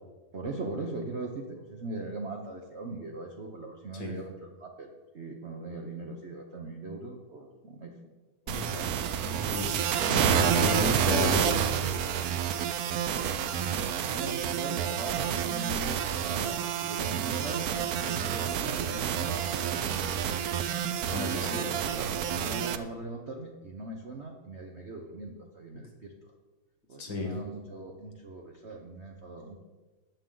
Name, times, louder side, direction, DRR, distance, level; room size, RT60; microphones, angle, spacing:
voice 1, 0.3-8.0 8.5-8.9 13.4-20.6 21.0-26.3 26.9-29.6, right 2 dB, 50° right, 2 dB, 0.8 m, -40 dB
sound 1, 8.5-22.8, right 8 dB, 85° right, 0.8 m, -29 dB
voice 2, 9.2-9.7 10.0-11.6 21.1-21.7 27.0-27.3, left 2 dB, 60° left, 2 dB, 2.7 m, -32 dB
13.5 x 9.1 x 3.8 m, 1.3 s
omnidirectional pair, 2.4 m